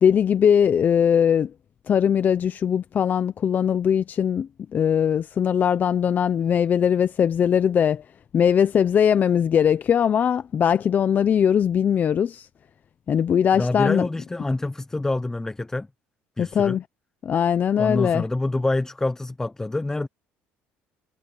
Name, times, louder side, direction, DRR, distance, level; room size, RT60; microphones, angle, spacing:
voice 1, 0.0-1.5 1.9-8.0 8.3-12.5 13.1-14.1 16.4-16.8 17.2-18.3, left 8 dB, 40° left, 0.8 m, -20 dB
voice 2, 13.5-15.9 16.4-16.8 17.8-20.1, left 2 dB, 10° left, 0.8 m, -26 dB
supercardioid pair, 95°, 5 cm